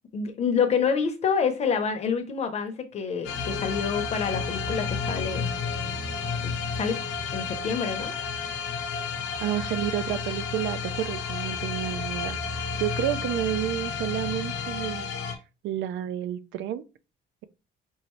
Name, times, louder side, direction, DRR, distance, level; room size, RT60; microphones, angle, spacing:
voice 1, 0.1-5.5 6.4-7.0 7.3-8.1, left 6 dB, 35° left, 0.7 m, -27 dB
sound 1, 3.2-15.3, left 5 dB, 75° left, 0.9 m, -31 dB
voice 2, 9.4-12.4 12.7-15.1 15.6-16.8, right 11 dB, 85° right, 0.5 m, -30 dB
5.4 x 2.5 x 3.0 m
cardioid pair, 175°, 19 cm